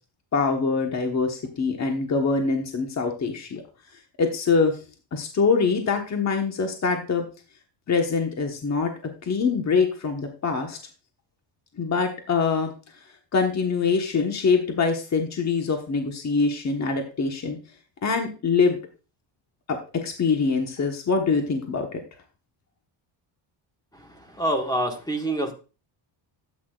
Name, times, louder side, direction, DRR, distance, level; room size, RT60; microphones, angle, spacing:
voice 1, 0.3-3.6 4.2-4.8 5.1-7.2 7.9-8.9 9.2-10.8 11.8-12.7 13.3-17.6 18.0-18.8 19.9-22.0, left 4 dB, 35° left, 3 dB, 1.3 m, -24 dB
voice 2, 24.3-25.5, right 1 dB, 10° left, 3 dB, 1.6 m, -25 dB
12.5 x 8.7 x 2.4 m, 0.33 s
cardioid pair, 125°, 49 cm